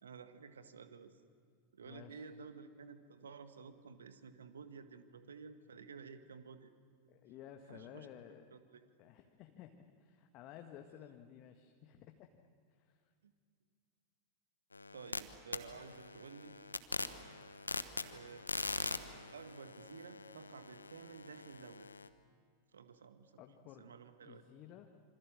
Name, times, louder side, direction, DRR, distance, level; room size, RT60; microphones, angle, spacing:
voice 1, 0.0-1.2 1.7-6.7 7.7-8.1 8.5-8.8 13.2-13.3 14.9-16.6 18.1-18.5 19.3-21.9 22.7-23.4 23.8-24.4, right 5 dB, 70° right, 10 dB, 1.7 m, -53 dB
voice 2, 1.8-2.2 7.1-8.4 9.0-12.4 12.7-13.1 23.4-23.8 24.2-24.9, left 10 dB, 40° left, 5 dB, 1.6 m, -54 dB
sound 1, 14.7-15.2 15.5-22.1, left 3 dB, 80° left, 1.1 m, -43 dB
27.0 x 25.5 x 7.5 m, 2.1 s
figure-of-eight pair, 90°, 0 cm